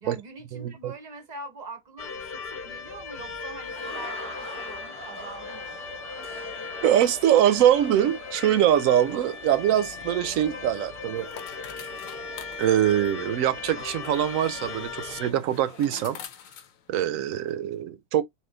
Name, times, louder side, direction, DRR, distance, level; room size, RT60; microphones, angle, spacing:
voice 1, 0.0-5.8, right 3 dB, 40° right, 0.7 m, -43 dB
voice 2, 0.5-0.9 6.8-11.3 12.6-16.2 16.9-18.2, right 11 dB, 80° right, 1.0 m, -23 dB
sound 1, 2.0-15.3, left 5 dB, 55° left, 0.8 m, -38 dB
sound 2, 3.4-16.2, equal, 10° right, 1.0 m, -44 dB
sound 3, 9.8-17.5, left 9 dB, 80° left, 1.1 m, -48 dB
3.6 x 2.9 x 3.8 m
omnidirectional pair, 1.4 m